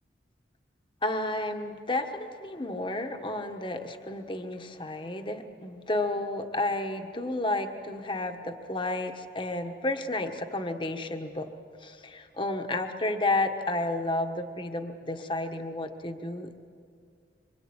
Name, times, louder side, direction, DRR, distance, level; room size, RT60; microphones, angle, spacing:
voice 1, 1.0-11.5 11.8-16.6, left 2 dB, 25° left, 6 dB, 1.4 m, -31 dB
25.5 x 25.0 x 8.9 m, 2.3 s
head